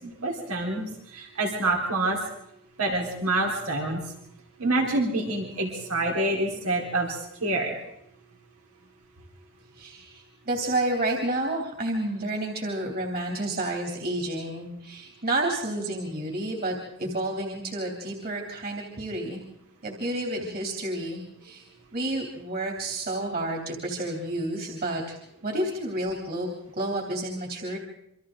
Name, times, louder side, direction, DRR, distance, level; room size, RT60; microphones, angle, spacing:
voice 1, 0.0-0.9 1.1-2.2 2.8-4.0 4.6-7.7, right 2 dB, 90° right, 0 dB, 3.9 m, -27 dB
voice 2, 9.8-19.4 19.8-21.6 21.9-27.8, right 1 dB, 45° right, 1 dB, 3.1 m, -30 dB
27.5 x 25.0 x 3.9 m, 0.77 s
head